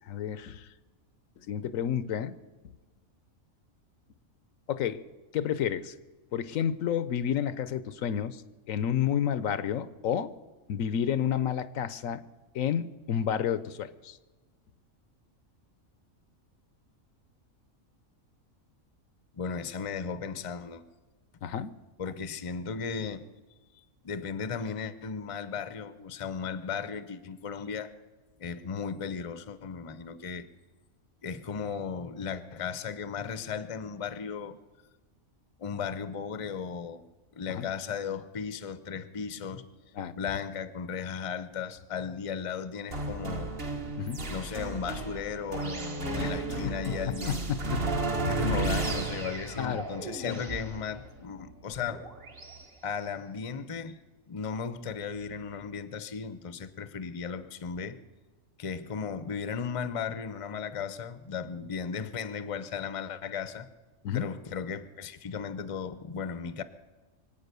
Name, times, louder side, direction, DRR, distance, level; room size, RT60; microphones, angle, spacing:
voice 1, 0.1-0.7 1.5-2.3 4.7-5.0 5.3-5.9 6.3-8.4 8.7-10.3 10.7-12.2 12.5-14.2 21.4-21.7 37.5-37.7 40.0-40.1 44.0-44.2 46.2-46.4 49.6-49.8 50.2-50.3 64.0-64.3, left 9 dB, 75° left, 1.1 m, -30 dB
voice 2, 19.3-20.8 22.0-23.2 23.7-27.9 28.4-30.5 31.2-34.6 35.6-37.0 37.3-39.7 40.1-43.5 44.3-47.4 48.3-52.1 52.8-54.0 54.3-58.0 58.6-63.7 64.1-66.6, left 6 dB, 30° left, 0.7 m, -36 dB
sound 1, 42.9-52.6, right 3 dB, 45° right, 1.7 m, -34 dB
24.0 x 8.6 x 6.8 m
omnidirectional pair, 1.4 m